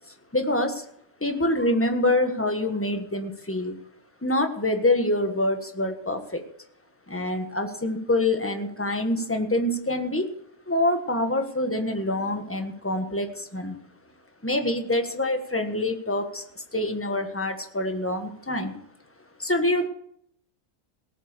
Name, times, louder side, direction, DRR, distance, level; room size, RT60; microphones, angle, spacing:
voice 1, 0.3-0.8 1.2-3.8 4.2-6.4 7.1-10.3 10.7-13.8 14.4-18.8 19.4-19.9, left 1 dB, 10° left, 5 dB, 1.3 m, -26 dB
18.0 x 8.0 x 6.7 m, 0.69 s
omnidirectional pair, 1.5 m